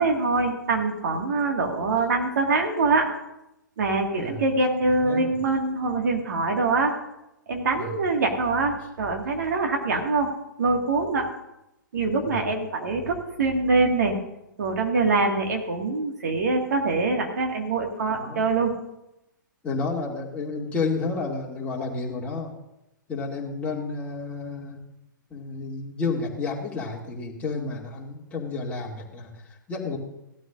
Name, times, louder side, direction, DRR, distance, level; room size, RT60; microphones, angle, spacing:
voice 1, 0.0-3.1 3.8-6.9 7.5-10.3 10.6-11.3 11.9-14.2 14.6-18.7, right 3 dB, 55° right, 2 dB, 2.0 m, -24 dB
voice 2, 4.1-4.4 4.8-5.4 7.7-7.9 12.2-12.5 18.1-18.4 19.6-22.5 23.1-24.8 25.3-30.0, left 4 dB, 10° left, -3 dB, 2.4 m, -31 dB
17.0 x 13.0 x 2.6 m, 0.88 s
figure-of-eight pair, 115°, 11 cm